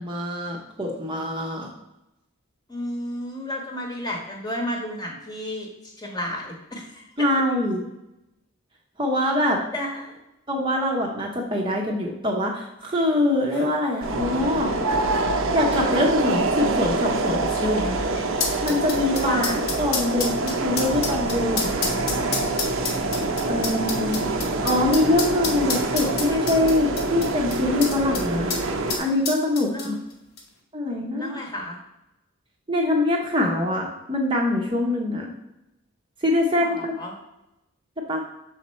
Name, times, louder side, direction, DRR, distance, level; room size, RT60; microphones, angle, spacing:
voice 1, 0.0-1.7 7.2-7.8 9.0-9.6 10.5-14.7 15.5-18.0 18.6-19.5 19.8-22.2 23.4-24.3 24.6-28.6 28.9-30.0 30.7-31.4 32.7-35.3 36.2-36.9 38.1-38.2, left 1 dB, 20° right, 0 dB, 0.7 m, -24 dB
voice 2, 2.7-7.0 9.7-10.1 19.2-19.5 29.7-30.0 31.2-31.8 36.4-37.2, left 1 dB, 20° left, 0 dB, 1.1 m, -32 dB
sound 1, 13.0-13.1 13.3-13.7 14.5-14.6 15.6-28.2 28.5-28.6 28.9-30.1 30.4-30.5, left 4 dB, 75° left, 1.1 m, -30 dB
sound 2, 14.0-29.0, right 3 dB, 65° right, 0.6 m, -26 dB
6.4 x 4.2 x 4.2 m, 0.93 s
head